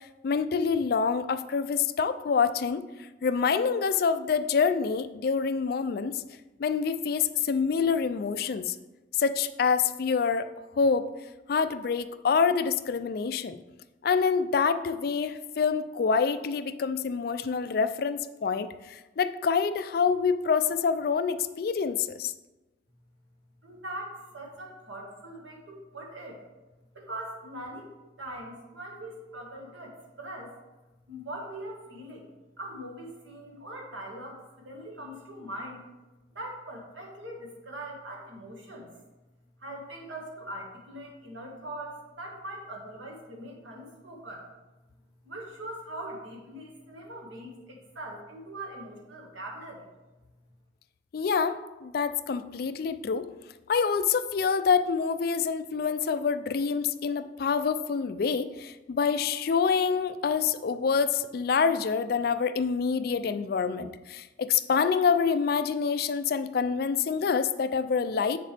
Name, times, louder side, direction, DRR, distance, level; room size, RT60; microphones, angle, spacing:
voice 1, 0.2-6.2 6.6-8.8 9.2-10.5 10.8-11.1 11.5-13.6 14.0-22.3 51.1-53.3 53.7-68.4, left 5 dB, 50° left, 12 dB, 0.3 m, -26 dB
voice 2, 23.6-26.4 26.9-27.9 28.2-30.5 31.1-32.3 32.6-35.8 36.3-38.9 39.6-44.4 45.2-49.9, right 1 dB, 90° right, -1 dB, 1.7 m, -41 dB
7.4 x 6.6 x 3.4 m, 1.1 s
head